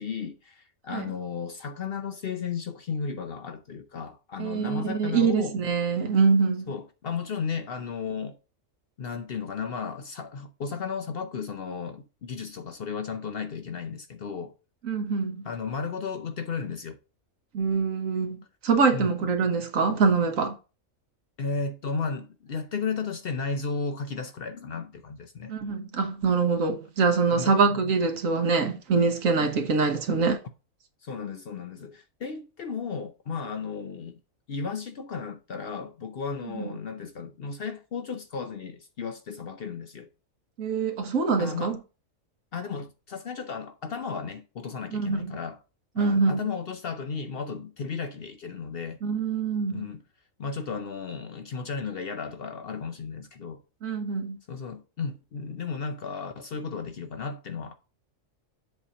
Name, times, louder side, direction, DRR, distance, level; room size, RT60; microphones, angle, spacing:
voice 1, 0.0-5.6 6.7-8.4 9.0-14.5 15.4-17.0 18.9-19.2 21.4-25.5 27.4-27.8 29.4-29.6 31.0-34.2 34.5-40.1 41.4-41.8 42.5-45.6 46.0-49.0 49.7-50.0 50.4-53.6 54.5-57.7, left 5 dB, 55° left, 0.7 m, -34 dB
voice 2, 4.4-6.6 14.8-15.4 17.5-20.6 25.5-30.4 36.5-36.7 40.6-41.8 44.9-45.4 46.0-46.4 49.0-49.8 53.8-54.4, right 4 dB, 75° right, 1.4 m, -24 dB
7.5 x 2.8 x 5.6 m
omnidirectional pair, 1.4 m